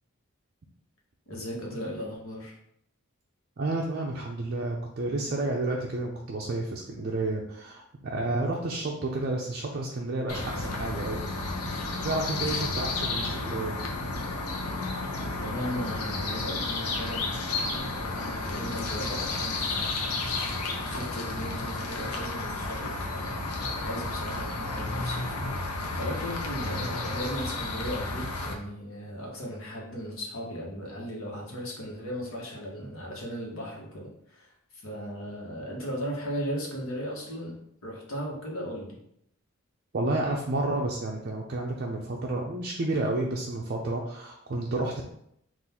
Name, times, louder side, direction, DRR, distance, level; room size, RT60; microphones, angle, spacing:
voice 1, 1.3-2.5 15.4-20.1 20.4-37.6 37.8-39.0, equal, 65° left, -3 dB, 1.2 m, -37 dB
voice 2, 3.6-13.9 39.9-45.0, right 2 dB, 45° right, -1 dB, 0.4 m, -31 dB
sound 1, 10.3-28.5, left 3 dB, 80° left, 0.7 m, -32 dB
3.9 x 2.5 x 4.2 m, 0.72 s
head